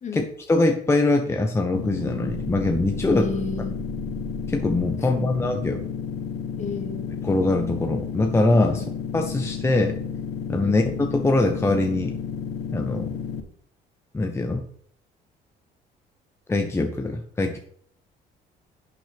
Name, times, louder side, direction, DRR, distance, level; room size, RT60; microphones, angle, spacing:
voice 1, 0.1-3.3 4.5-5.9 7.2-8.8 9.1-9.9 10.5-12.2 12.7-13.1 14.1-14.6 16.5-17.6, left 2 dB, 15° left, 4 dB, 0.9 m, -23 dB
sound 1, 1.7-13.4, left 6 dB, 80° left, 1.1 m, -32 dB
sound 2, 2.3-5.1, right 2 dB, 25° right, 0.7 m, -38 dB
voice 2, 3.0-3.7 5.1-5.4 6.6-7.1 8.7-8.9 10.6-10.8, left 4 dB, 45° left, 6 dB, 1.8 m, -32 dB
11.0 x 6.2 x 3.5 m, 0.62 s
cardioid pair, 110°, 17 cm